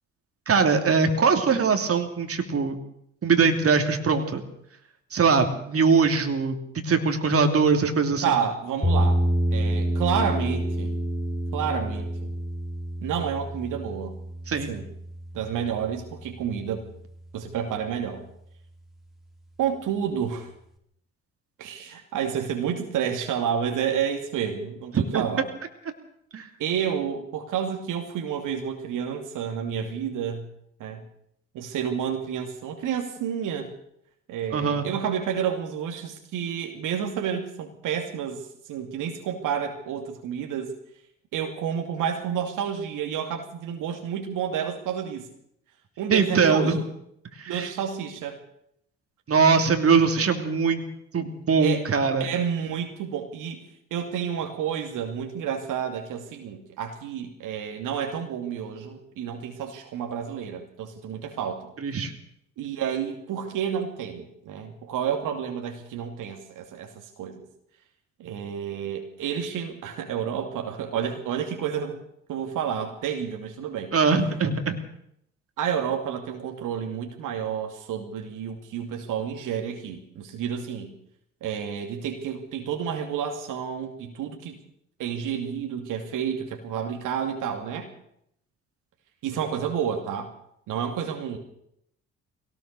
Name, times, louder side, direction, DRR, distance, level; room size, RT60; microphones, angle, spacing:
voice 1, 0.5-2.8 3.2-4.4 5.1-8.2 14.5-14.7 25.1-25.3 26.3-26.5 34.5-34.9 46.1-46.8 47.4-47.7 49.3-50.8 51.1-52.3 61.8-62.1 73.9-74.8, right 5 dB, 40° right, 5 dB, 3.0 m, -22 dB
voice 2, 8.2-9.2 9.5-11.0 11.5-12.3 13.0-14.1 14.5-14.8 15.3-16.9 17.3-18.2 19.6-20.5 21.6-25.4 26.6-30.5 30.8-31.0 31.5-33.7 34.3-38.4 38.7-40.7 41.3-45.3 46.0-46.8 47.5-48.4 51.1-51.3 51.6-51.8 52.2-53.6 53.9-61.7 62.6-67.4 68.2-72.0 72.3-73.9 75.6-80.9 81.4-84.6 85.0-87.9 89.2-90.3 90.7-91.4, right 8 dB, 60° right, 3 dB, 2.6 m, -30 dB
sound 1, 8.8-16.9, equal, ahead, 4.8 m, -28 dB
22.0 x 18.0 x 6.7 m, 0.74 s
hypercardioid pair, 50°, 35 cm